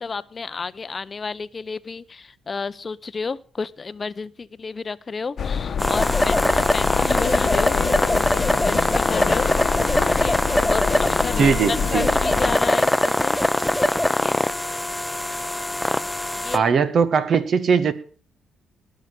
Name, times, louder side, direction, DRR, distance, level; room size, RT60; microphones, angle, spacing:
voice 1, 0.0-2.0 2.5-4.3 4.6-6.4 6.7-7.7 8.2-9.5 10.2-10.4 10.7-11.5 11.9-13.3 14.2-14.4 16.4-16.6, left 4 dB, 35° left, 17 dB, 0.7 m, -31 dB
sound 1, 5.4-12.6, left 6 dB, 55° left, 1.0 m, -26 dB
sound 2, 5.8-16.6, left 1 dB, 5° left, 0.8 m, -22 dB
voice 2, 11.4-12.1 16.5-17.9, right 6 dB, 55° right, 12 dB, 1.5 m, -19 dB
19.0 x 6.6 x 6.7 m, 0.41 s
cardioid pair, 90°, 0 cm